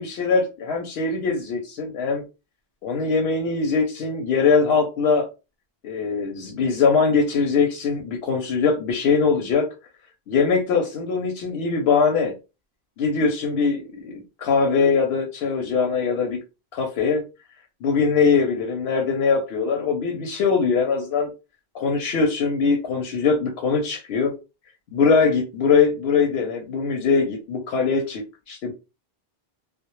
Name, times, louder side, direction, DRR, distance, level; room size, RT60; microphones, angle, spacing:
voice 1, 0.0-2.2 2.8-5.3 5.8-9.7 10.3-12.3 13.0-16.4 16.7-17.2 17.8-21.3 21.7-24.3 24.9-28.7, left 5 dB, 85° left, 0.8 m, -22 dB
2.1 x 2.0 x 2.9 m
omnidirectional pair, 1.0 m